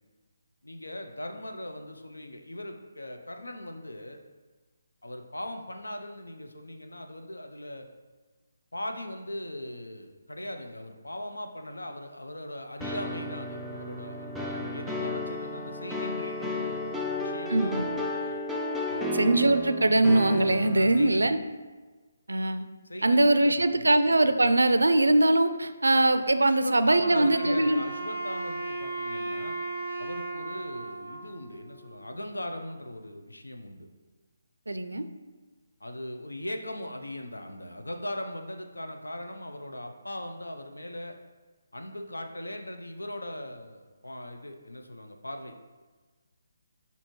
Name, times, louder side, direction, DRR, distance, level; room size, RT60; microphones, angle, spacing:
voice 1, 0.6-4.2 5.0-7.9 8.7-18.4 18.9-19.2 20.7-21.4 22.8-23.9 26.4-29.6 30.0-33.9 35.8-41.2 41.7-45.5, left 1 dB, 90° left, 4 dB, 0.6 m, -39 dB
sound 1, 12.8-21.1, left 1 dB, ahead, 0.4 m, -33 dB
voice 2, 17.5-17.9 19.1-21.4 22.3-22.7 23.0-27.8 34.7-35.0, right 2 dB, 85° right, 10 dB, 0.4 m, -22 dB
Wind instrument woodwind instrument, 27.0-32.1, right 3 dB, 55° left, 1.3 m, -36 dB
6.3 x 2.7 x 3.0 m, 1.3 s
figure-of-eight pair, 150°, 0 cm